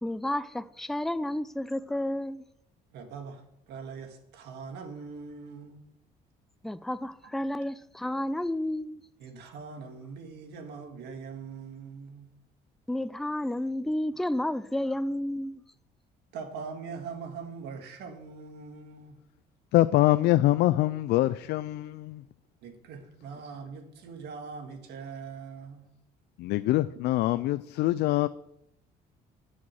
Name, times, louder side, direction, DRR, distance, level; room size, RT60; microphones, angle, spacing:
voice 1, 0.0-2.4 6.6-9.0 12.9-15.6, left 1 dB, ahead, 0.4 m, -31 dB
voice 2, 2.9-5.8 9.2-12.3 16.3-19.2 22.6-25.9, right 5 dB, 80° right, 1.8 m, -42 dB
voice 3, 19.7-22.2 26.4-28.3, left 16 dB, 80° left, 0.4 m, -24 dB
11.0 x 6.4 x 6.5 m
cardioid pair, 110°, 17 cm